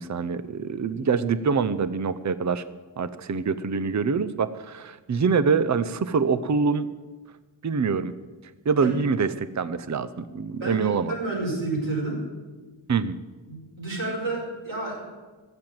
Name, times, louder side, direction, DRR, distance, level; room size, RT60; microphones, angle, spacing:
voice 1, 0.0-2.6 3.0-6.9 7.6-8.1 8.7-11.1 12.9-13.2, right 5 dB, 40° right, 14 dB, 0.6 m, -25 dB
voice 2, 10.6-12.2 13.5-15.1, right 2 dB, 75° right, -5 dB, 5.8 m, -30 dB
13.5 x 7.9 x 8.9 m, 1.3 s
wide cardioid pair, 80°, 47 cm